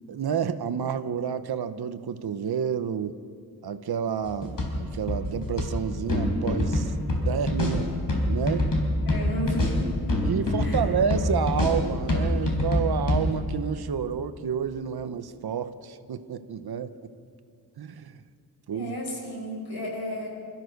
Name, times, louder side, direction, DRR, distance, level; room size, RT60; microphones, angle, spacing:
voice 1, 0.1-3.2 3.6-6.9 7.3-8.0 8.3-8.7 10.3-16.9 17.8-18.1 18.7-18.9, right 7 dB, 90° right, 10 dB, 0.9 m, -29 dB
sound 1, 4.3-13.2, left 1 dB, 60° left, 4.2 m, -26 dB
voice 2, 9.1-9.9 10.6-10.9 18.7-20.3, equal, 85° left, 0 dB, 6.1 m, -33 dB
28.0 x 14.0 x 6.6 m, 2.3 s
wide cardioid pair, 145°, 37 cm